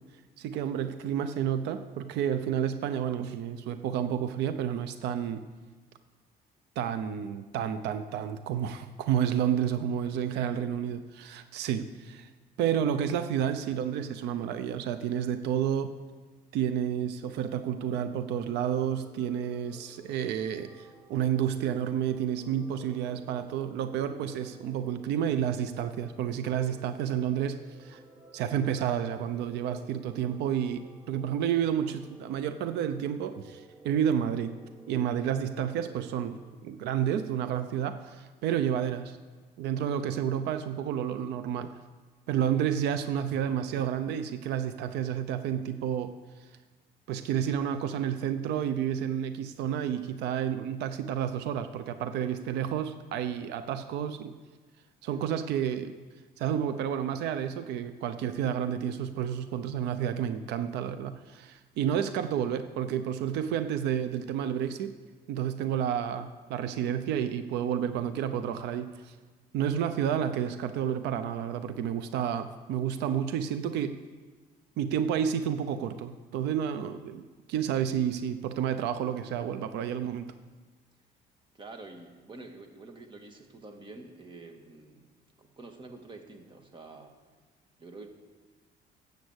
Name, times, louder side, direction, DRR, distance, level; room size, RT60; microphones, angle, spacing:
voice 1, 0.4-5.4 6.8-12.3 12.6-15.9 16.5-28.0 28.3-34.6 34.9-39.2 39.6-41.8 42.3-46.1 47.1-54.3 55.0-55.9 56.4-65.0 65.3-69.1 69.5-74.0 74.8-80.3, right 9 dB, 85° right, 10 dB, 0.8 m, -30 dB
voice 2, 10.0-10.8 55.0-55.2 77.5-77.8 81.5-85.1 85.4-87.1 87.8-88.1, right 3 dB, 30° right, 5 dB, 1.9 m, -48 dB
sound 1, 17.2-36.5, right 2 dB, 10° right, 1.5 m, -54 dB
13.0 x 8.3 x 8.1 m, 1.4 s
cardioid pair, 110°, 17 cm